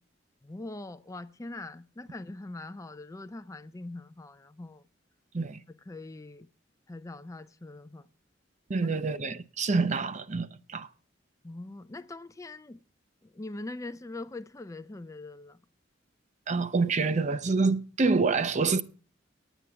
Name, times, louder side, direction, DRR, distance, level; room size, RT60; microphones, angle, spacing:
voice 1, 0.4-4.8 5.9-6.5 6.9-8.1 11.4-12.8 13.2-15.6, left 2 dB, 15° left, 0.4 m, -42 dB
voice 2, 8.7-10.9 16.5-18.8, right 4 dB, 40° right, 0.6 m, -27 dB
9.8 x 9.1 x 6.8 m
head